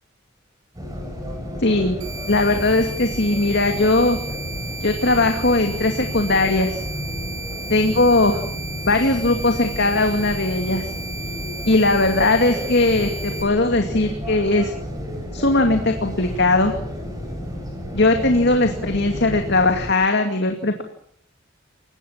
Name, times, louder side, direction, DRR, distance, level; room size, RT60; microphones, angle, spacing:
sound 1, 0.7-19.9, equal, 20° right, 7.7 m, -32 dB
voice 1, 1.6-2.0 2.3-4.2 4.8-6.8 7.7-8.4 8.8-10.9 11.7-14.7 15.3-16.8 17.9-20.8, left 2 dB, 55° left, 5 dB, 2.4 m, -19 dB
sound 2, 2.0-13.4, right 2 dB, 85° right, 8.0 m, -35 dB
29.0 x 17.0 x 7.4 m, 0.62 s
head